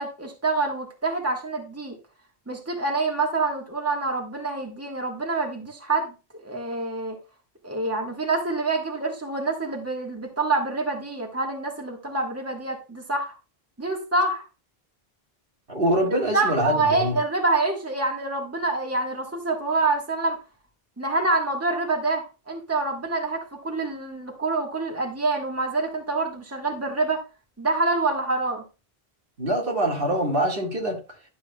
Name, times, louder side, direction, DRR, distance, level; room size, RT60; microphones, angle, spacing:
voice 1, 0.0-2.0 2.5-7.2 7.6-13.3 13.8-14.4 16.3-20.4 21.0-27.2 27.6-28.6, right 3 dB, 15° right, 1.6 m, -26 dB
voice 2, 15.7-17.2 29.4-31.0, right 1 dB, 60° right, 2.0 m, -24 dB
11.5 x 7.4 x 2.3 m
omnidirectional pair, 1.0 m